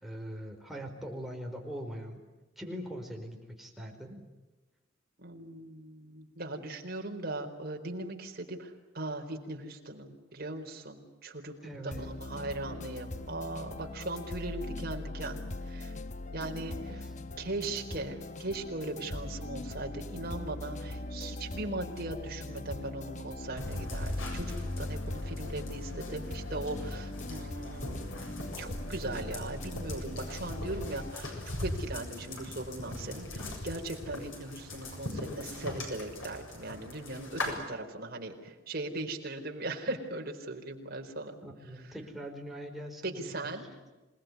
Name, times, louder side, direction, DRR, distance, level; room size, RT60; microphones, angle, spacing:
voice 1, 0.0-2.2 2.6-4.2 11.6-12.2 16.4-17.1 41.4-43.5, equal, ahead, 0 dB, 4.9 m, -42 dB
voice 2, 5.2-15.9 16.3-16.8 17.4-28.1 28.6-41.4 41.7-41.9 43.0-43.7, right 2 dB, 50° right, 2 dB, 4.3 m, -39 dB
sound 1, 11.9-31.1, left 2 dB, 40° left, 1.0 m, -41 dB
sound 2, 23.6-37.5, left 1 dB, 85° left, 7.4 m, -40 dB
27.5 x 19.5 x 9.6 m, 1.1 s
head